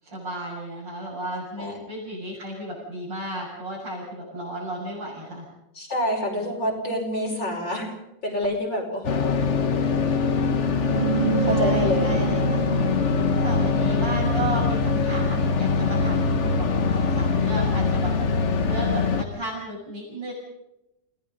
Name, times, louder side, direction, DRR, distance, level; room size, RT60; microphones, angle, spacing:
voice 1, 0.0-5.4 11.3-12.7 13.1-20.3, right 1 dB, 80° right, -7 dB, 7.8 m, -34 dB
voice 2, 5.8-7.9 8.2-9.3 11.1-12.2, equal, 85° left, 0 dB, 6.2 m, -27 dB
sound 1, 9.0-19.2, left 4 dB, 45° left, 1.3 m, -23 dB
sound 2, 10.8-15.6, right 7 dB, 65° right, 0.4 m, -30 dB
28.5 x 18.5 x 5.4 m, 0.89 s
omnidirectional pair, 2.0 m